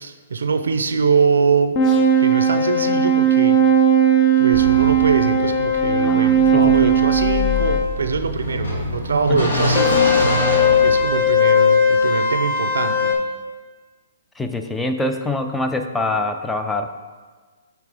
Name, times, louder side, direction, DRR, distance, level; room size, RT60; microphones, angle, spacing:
voice 1, 0.0-1.8 2.2-3.8 4.4-13.2, right 5 dB, 85° right, 10 dB, 0.4 m, -23 dB
sound 1, 1.7-7.8 9.7-13.1, right 2 dB, 30° left, 0.7 m, -17 dB
sound 2, 4.5-11.5, left 2 dB, 80° left, 1.6 m, -25 dB
voice 2, 6.0-6.9 9.3-9.5 14.4-17.0, left 2 dB, 5° left, 6 dB, 0.3 m, -25 dB
8.4 x 3.4 x 3.4 m, 1.4 s
hypercardioid pair, 145°, 0 cm